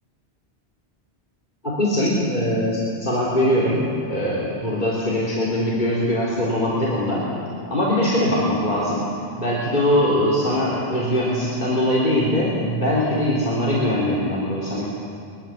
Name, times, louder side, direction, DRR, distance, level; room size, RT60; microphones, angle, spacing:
voice 1, 1.6-7.3 7.7-9.0 9.4-14.9, left 1 dB, 45° left, -7 dB, 4.1 m, -21 dB
23.5 x 21.5 x 7.5 m, 2.4 s
omnidirectional pair, 1.1 m